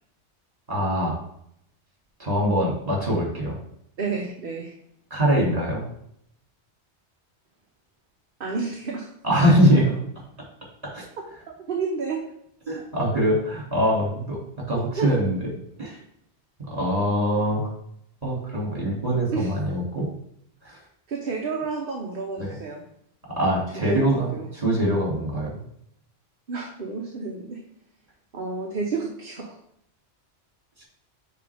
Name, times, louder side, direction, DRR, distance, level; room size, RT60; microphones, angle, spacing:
voice 1, 0.7-1.2 2.2-3.6 5.1-5.8 9.2-10.0 10.8-11.0 12.7-14.4 14.7-15.5 15.8-16.0 16.6-17.7 18.2-20.1 20.6-20.8 22.4-22.5 23.3-25.6, equal, 35° right, -3 dB, 2.6 m, -23 dB
voice 2, 4.0-4.7 8.4-9.1 11.7-12.2 14.8-15.1 19.3-19.5 21.1-22.8 23.8-24.4 26.5-27.6 28.3-29.6, right 4 dB, 55° right, 0 dB, 1.0 m, -30 dB
9.0 x 3.8 x 3.4 m, 0.72 s
omnidirectional pair, 1.1 m